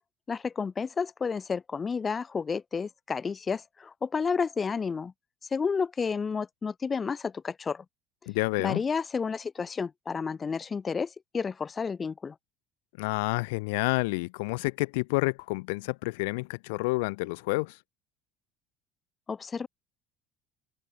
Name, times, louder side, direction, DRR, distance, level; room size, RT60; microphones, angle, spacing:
voice 1, 0.3-5.1 5.5-7.8 8.6-12.4 19.3-19.7, left 5 dB, 30° left, 7.2 m, -31 dB
voice 2, 8.3-8.8 13.0-17.8, left 26 dB, 85° left, 0.7 m, -29 dB
supercardioid pair, 90°, 0 cm